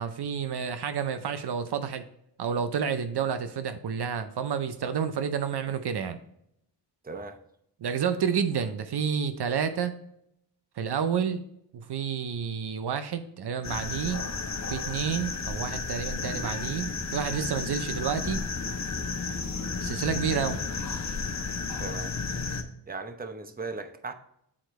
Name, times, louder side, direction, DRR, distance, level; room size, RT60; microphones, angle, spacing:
voice 1, 0.0-2.0 2.4-6.2 7.8-9.9 10.8-11.4 11.7-14.2 14.7-18.5 19.8-20.6, right 7 dB, 65° right, 0.7 m, -30 dB
voice 2, 7.0-7.4 21.8-22.1 22.9-24.1, right 3 dB, 20° right, 0.8 m, -37 dB
sound 1, 13.6-22.6, left 4 dB, 40° left, 1.0 m, -33 dB
8.7 x 4.5 x 3.1 m
cardioid pair, 70°, 43 cm